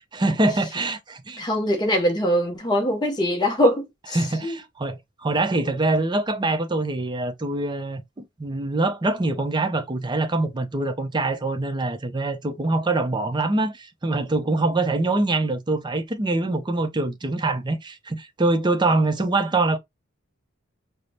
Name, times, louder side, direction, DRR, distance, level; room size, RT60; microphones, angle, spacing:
voice 1, 0.0-1.4 4.1-19.8, right 2 dB, 20° right, 0.5 m, -24 dB
voice 2, 1.4-4.2 4.4-4.5, equal, 20° left, 0.6 m, -22 dB
4.8 x 2.0 x 2.7 m
head